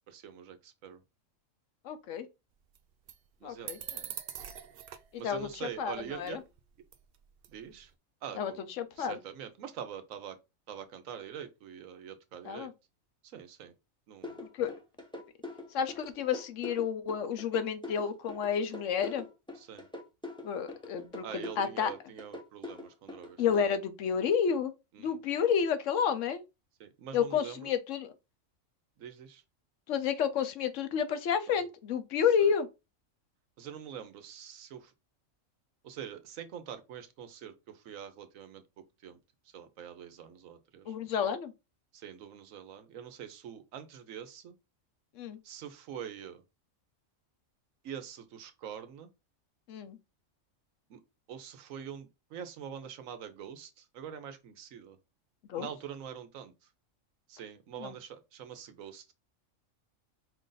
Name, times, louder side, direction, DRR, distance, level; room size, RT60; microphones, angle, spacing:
voice 1, 0.1-1.0 3.4-3.7 5.2-6.4 7.5-7.9 8.2-8.6 9.0-10.4 10.7-12.7 13.3-13.7 14.1-14.4 19.6-19.9 21.2-23.4 24.9-25.2 26.8-27.7 29.0-29.4 31.5-31.6 32.4-32.5 33.6-34.9 35.8-38.6 39.0-39.2 39.5-40.9 41.9-44.5 45.4-46.4 47.8-49.1 50.9-51.0 51.3-55.0 55.6-56.5 57.3-59.1, right 8 dB, 80° right, 1.1 m, -44 dB
voice 2, 1.8-2.3 3.4-4.0 5.2-6.4 8.4-8.5 8.8-9.2 12.4-12.7 14.6-14.7 15.7-19.2 20.4-21.9 23.4-24.7 25.0-26.4 27.1-28.1 29.9-32.7 40.9-41.5 45.2-45.4 49.7-50.0 55.5-55.7 57.8-57.9, left 7 dB, 70° left, 1.0 m, -30 dB
sound 1, 2.7-2.8 3.1-3.2 3.7-5.1 5.4-5.6 6.0-6.6 6.9-7.2 7.4-7.8, right 9 dB, 60° right, 0.6 m, -43 dB
sound 2, 14.2-23.6, left 2 dB, 5° left, 0.5 m, -43 dB
4.8 x 2.6 x 3.8 m
omnidirectional pair, 1.4 m